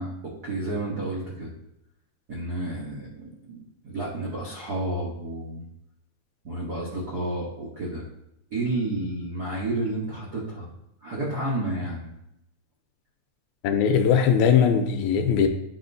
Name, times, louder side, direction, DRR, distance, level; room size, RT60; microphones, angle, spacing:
voice 1, 0.0-1.5 2.3-5.6 6.4-8.0 8.5-10.7 11.0-12.1, right 2 dB, 80° right, -6 dB, 0.8 m, -31 dB
voice 2, 13.6-15.5, left 7 dB, 80° left, 6 dB, 1.8 m, -20 dB
10.0 x 4.3 x 2.6 m, 0.84 s
omnidirectional pair, 3.5 m